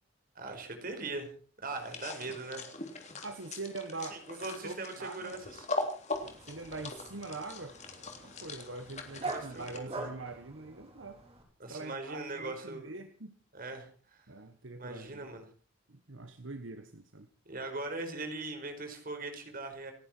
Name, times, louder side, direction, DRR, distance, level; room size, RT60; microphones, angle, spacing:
voice 1, 0.3-1.3 1.6-2.7 4.1-5.9 9.2-10.1 11.6-12.9 13.5-14.2 14.8-15.4 17.4-19.9, right 2 dB, 45° right, 5 dB, 4.9 m, -40 dB
sound 1, 1.7-9.8, left 2 dB, 35° left, 3.6 m, -41 dB
voice 2, 3.2-5.3 6.2-7.8 8.2-11.2 11.7-13.3 14.3-15.3 15.9-17.3, right 3 dB, 70° right, 8 dB, 1.5 m, -43 dB
Dog, 6.1-11.4, right 3 dB, 30° right, 4.2 m, -44 dB
28.5 x 11.0 x 4.6 m, 0.40 s
head